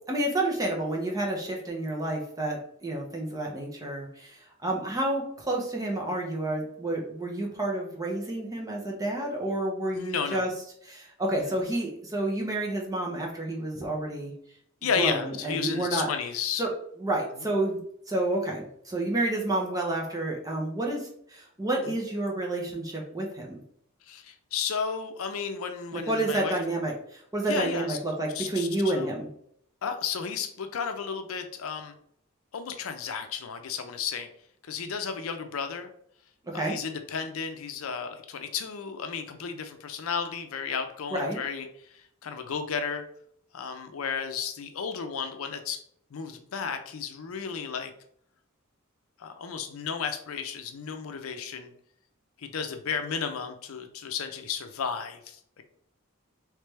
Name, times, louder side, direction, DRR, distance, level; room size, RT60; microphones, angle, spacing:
voice 1, 0.1-10.5 10.8-14.3 14.9-16.1 16.6-16.7 17.0-23.6 25.9-29.3 36.4-36.8 41.1-41.4, right 1 dB, 15° right, -1 dB, 0.7 m, -30 dB
voice 2, 9.9-10.5 11.4-11.5 14.8-16.6 21.9-22.0 24.1-26.5 27.4-28.0 28.3-29.1 29.8-31.9 32.5-34.3 34.6-35.9 36.5-43.0 43.5-45.8 46.1-47.9 49.2-51.7 52.4-55.4, left 6 dB, 75° left, 7 dB, 0.5 m, -33 dB
3.2 x 3.2 x 3.3 m, 0.68 s
head